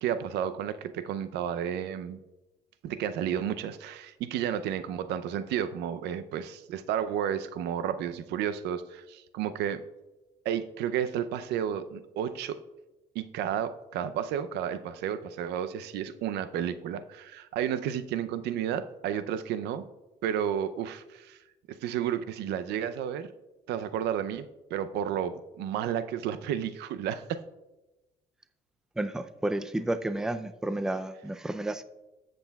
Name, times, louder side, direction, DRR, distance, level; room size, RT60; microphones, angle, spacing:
voice 1, 0.0-2.2 2.8-9.8 10.4-12.6 13.1-19.8 20.2-21.4 21.7-23.3 23.7-27.4, right 9 dB, 80° right, 12 dB, 0.6 m, -32 dB
voice 2, 29.0-31.8, right 1 dB, 5° right, 11 dB, 0.4 m, -31 dB
13.5 x 7.8 x 2.3 m, 1.0 s
cardioid pair, 110°, 17 cm